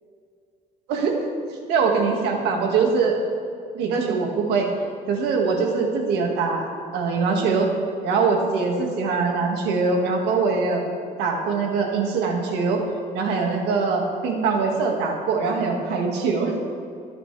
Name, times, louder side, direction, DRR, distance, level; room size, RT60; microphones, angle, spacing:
voice 1, 1.7-3.1 3.7-4.7 5.1-7.7 8.0-10.9 11.2-12.8 13.1-16.6, right 4 dB, 85° right, 1 dB, 2.1 m, -22 dB
20.5 x 9.7 x 3.4 m, 2.5 s
cardioid pair, 110°, 17 cm